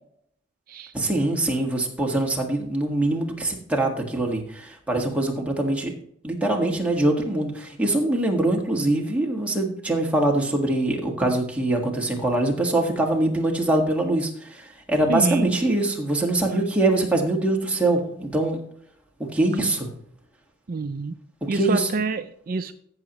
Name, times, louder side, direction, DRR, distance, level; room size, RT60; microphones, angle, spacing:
voice 1, 0.9-5.9 6.2-18.6 19.3-19.9 21.4-21.9, right 2 dB, 5° right, 0 dB, 1.5 m, -23 dB
voice 2, 15.1-15.6 20.7-21.1 21.5-22.7, right 3 dB, 45° right, 9 dB, 0.4 m, -27 dB
14.5 x 6.5 x 3.0 m, 0.69 s
head